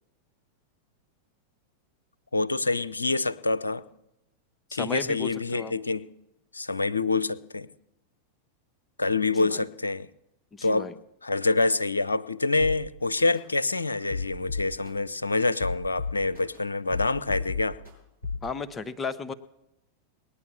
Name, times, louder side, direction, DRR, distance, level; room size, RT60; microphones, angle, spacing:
voice 1, 2.3-3.9 4.7-6.1 6.5-7.7 9.0-10.1 10.6-10.9 11.2-17.8, left 3 dB, 80° left, 17 dB, 0.5 m, -26 dB
voice 2, 4.7-5.7 9.4-9.6 10.5-10.9 18.4-19.3, left 4 dB, 20° left, 11 dB, 0.8 m, -34 dB
sound 1, 12.6-12.8 13.3-13.4 13.9-14.9 15.4-16.6 16.9-17.9 18.2-18.5, left 4 dB, 85° right, 6.3 m, -32 dB
20.0 x 9.6 x 7.0 m, 0.88 s
figure-of-eight pair, 90°, 0 cm